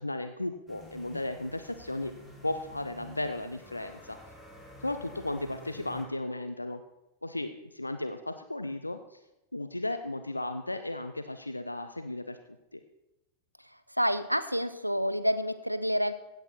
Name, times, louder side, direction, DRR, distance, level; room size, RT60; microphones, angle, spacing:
voice 1, 0.0-2.1 2.4-4.2 4.8-6.8 7.2-9.2 9.5-12.4 12.7-12.8, left 2 dB, 85° left, 9 dB, 0.5 m, -35 dB
sound 1, 0.7-6.1, left 1 dB, 15° left, 2.4 m, -50 dB
voice 2, 13.6-16.1, equal, 90° right, 12 dB, 0.6 m, -29 dB
16.0 x 8.1 x 4.3 m, 0.95 s
figure-of-eight pair, 90°, 0 cm